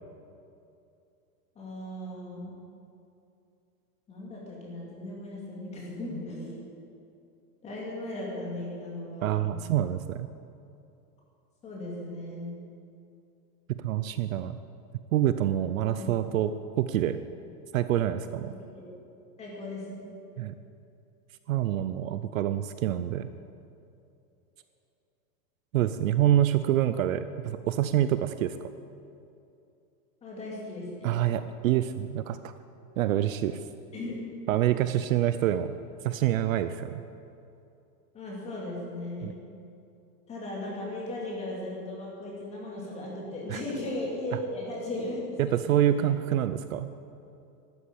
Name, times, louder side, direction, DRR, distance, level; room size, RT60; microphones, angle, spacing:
voice 1, 1.6-2.6 4.1-6.6 7.6-9.5 11.6-12.5 15.8-16.1 18.5-18.9 19.4-20.2 30.2-31.2 33.9-34.2 38.1-39.3 40.3-46.0, left 1 dB, 15° left, -3 dB, 2.4 m, -37 dB
voice 2, 9.2-10.3 13.7-14.6 15.1-16.5 16.8-17.2 17.7-18.5 20.4-20.6 21.5-23.3 25.7-28.6 31.0-32.4 33.0-33.6 34.5-35.7 36.0-37.0 39.2-39.3 43.5-43.6 45.4-46.9, right 12 dB, 60° right, 12 dB, 0.6 m, -26 dB
12.5 x 8.5 x 8.5 m, 2.7 s
supercardioid pair, 175°, 46 cm